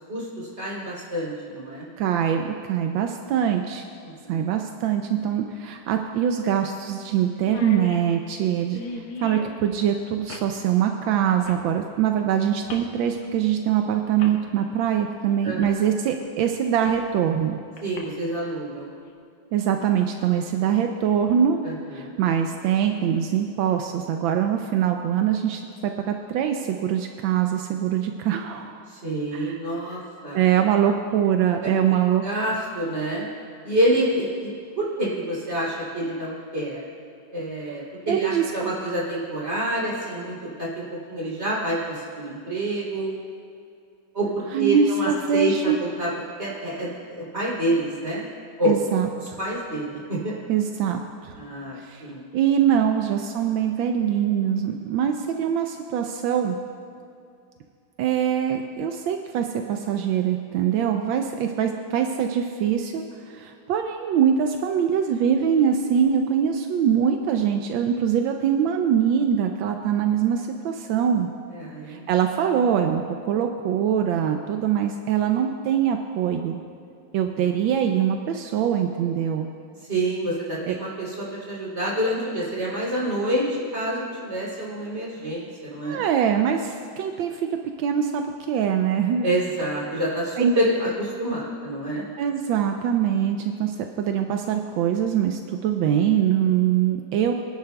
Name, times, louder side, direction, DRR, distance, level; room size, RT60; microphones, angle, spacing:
voice 1, 0.0-1.9 4.0-4.4 15.4-15.6 17.8-18.9 21.6-22.1 28.9-30.4 31.6-33.2 33.6-36.8 37.3-43.1 44.1-46.1 46.4-48.2 48.6-48.7 49.4-50.4 51.4-52.2 71.5-72.1 77.3-77.4 79.9-86.0 89.2-92.0, right 1 dB, 35° right, -6 dB, 3.4 m, -27 dB
voice 2, 2.0-3.9 4.3-17.6 19.5-21.6 21.9-28.8 29.3-29.5 30.3-32.2 38.1-38.7 44.5-45.8 48.6-49.4 50.5-51.3 51.8-52.0 52.3-56.6 58.0-63.0 63.3-71.3 71.9-76.6 77.1-79.5 80.7-80.8 85.8-87.4 87.8-89.3 90.4-90.6 92.2-97.3, right 8 dB, 85° right, 4 dB, 1.4 m, -23 dB
sound 1, 3.6-3.7 5.5-5.6 6.0-6.1 6.6-6.8 7.1-7.2 7.4-9.6 10.3-10.5 11.4-11.7 12.6-12.9 13.7-13.8 14.2-14.4 15.6-15.8 16.2-17.1 17.8-18.0, left 3 dB, 80° left, 1.9 m, -37 dB
23.5 x 10.5 x 2.3 m, 2.4 s
omnidirectional pair, 2.1 m